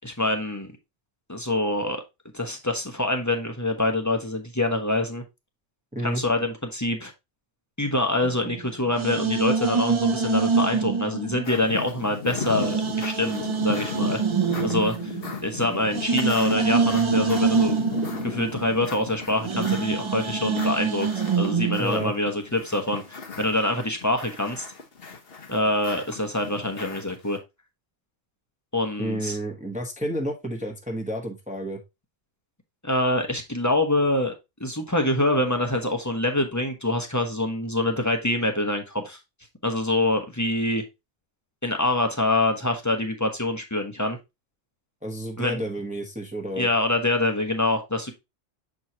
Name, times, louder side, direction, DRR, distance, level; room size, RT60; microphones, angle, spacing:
voice 1, 0.0-0.7 1.3-2.0 2.3-5.2 6.0-7.1 7.8-14.2 14.6-15.1 15.4-17.8 18.2-21.1 21.3-24.7 25.5-27.4 28.7-29.4 32.8-34.3 34.6-39.2 39.6-40.8 41.6-44.2 45.4-45.6 46.6-48.1, left 1 dB, 15° left, 3 dB, 1.0 m, -25 dB
voice 2, 5.9-6.2 21.8-22.1 29.0-31.8 45.0-46.7, equal, 5° right, 1 dB, 1.0 m, -30 dB
sound 1, 8.2-12.0 12.4-21.8, right 5 dB, 35° right, 0.5 m, -26 dB
sound 2, 11.4-27.4, left 5 dB, 55° left, 1.3 m, -36 dB
7.2 x 4.7 x 2.8 m, 0.23 s
omnidirectional pair, 1.2 m